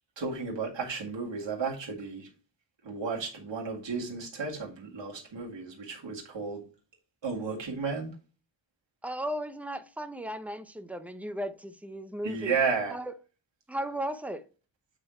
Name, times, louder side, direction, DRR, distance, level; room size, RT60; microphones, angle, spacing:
voice 1, 0.2-2.3 2.8-6.6 7.2-8.2 12.2-13.0, right 5 dB, 65° right, 2.1 m, -33 dB
voice 2, 9.0-12.5 12.9-13.1 13.7-14.5, right 1 dB, 5° right, 0.6 m, -36 dB
8.0 x 3.9 x 4.2 m
wide cardioid pair, 95°, 48 cm